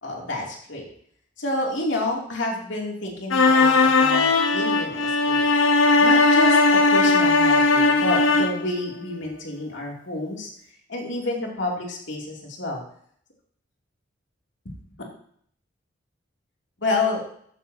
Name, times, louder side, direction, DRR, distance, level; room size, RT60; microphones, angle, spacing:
voice 1, 0.0-0.9 1.4-6.6 6.9-10.5 10.9-12.8 14.6-14.7 16.8-17.2, left 2 dB, 65° left, -1 dB, 2.8 m, -29 dB
sound 1, 3.3-8.7, left 3 dB, 90° left, 1.0 m, -18 dB
14.5 x 9.5 x 2.8 m, 0.64 s
head